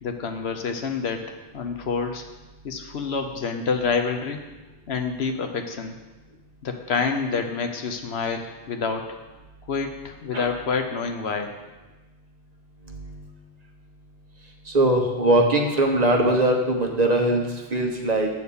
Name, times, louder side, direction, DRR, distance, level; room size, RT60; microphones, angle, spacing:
voice 1, 0.0-2.2 2.6-4.4 4.9-6.0 6.6-9.2 9.7-11.5, left 5 dB, 75° left, 5 dB, 1.1 m, -28 dB
voice 2, 12.9-13.2 14.7-18.3, right 1 dB, 40° right, 1 dB, 1.0 m, -21 dB
8.5 x 4.4 x 6.8 m, 1.1 s
omnidirectional pair, 1.1 m